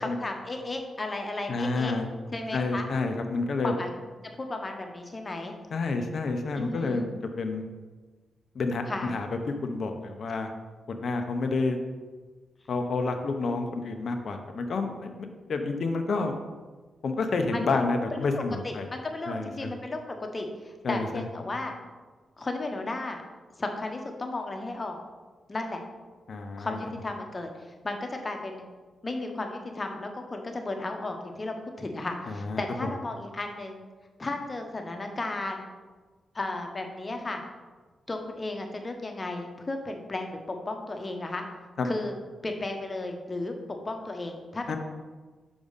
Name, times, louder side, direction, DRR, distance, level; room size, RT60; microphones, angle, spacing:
voice 1, 0.0-1.9 2.3-2.9 3.6-3.9 4.2-5.5 6.5-7.0 8.9-9.1 17.5-17.8 18.1-21.7 22.4-23.2 23.6-25.0 25.5-25.8 26.6-27.5 27.8-28.6 29.0-33.8 34.2-35.7 36.3-37.4 38.1-41.4 41.8-42.1 42.4-44.8, left 2 dB, 40° left, 4 dB, 1.2 m, -34 dB
voice 2, 1.5-2.1 2.5-3.7 5.7-7.6 8.5-10.5 10.9-11.8 12.7-15.1 15.5-16.4 17.0-18.9 19.3-19.5 20.8-21.2 26.3-26.8 32.3-32.6 41.8-41.9 44.7-44.8, left 3 dB, 65° left, 5 dB, 0.7 m, -29 dB
6.1 x 5.0 x 4.0 m, 1.3 s
supercardioid pair, 40°, 0 cm